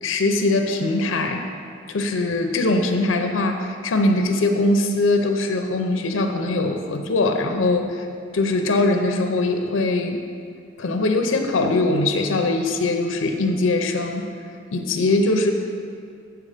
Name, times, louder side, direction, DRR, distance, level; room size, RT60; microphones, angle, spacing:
voice 1, 0.0-1.4 1.9-8.1 8.3-10.2 10.8-14.2 14.7-15.5, left 2 dB, 85° left, 5 dB, 0.5 m, -21 dB
7.6 x 4.6 x 4.9 m, 2.3 s
head